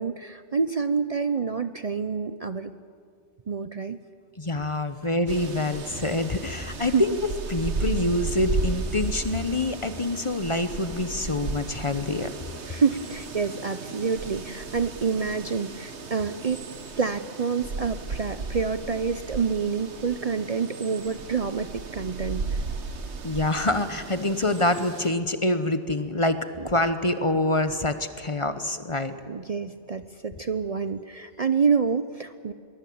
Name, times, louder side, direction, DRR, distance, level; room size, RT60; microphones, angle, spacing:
voice 1, 0.0-2.7 3.5-4.0 6.9-7.0 12.7-16.6 17.0-22.5 26.6-26.7 29.3-32.5, right 5 dB, 40° right, 11 dB, 0.7 m, -27 dB
voice 2, 4.4-7.1 7.5-12.3 23.2-26.4 26.6-29.1, left 2 dB, 30° left, 10 dB, 1.0 m, -26 dB
sound 1, 5.3-25.1, right 4 dB, 90° right, 1.7 m, -35 dB
22.5 x 21.0 x 8.6 m, 2.2 s
omnidirectional pair, 1.1 m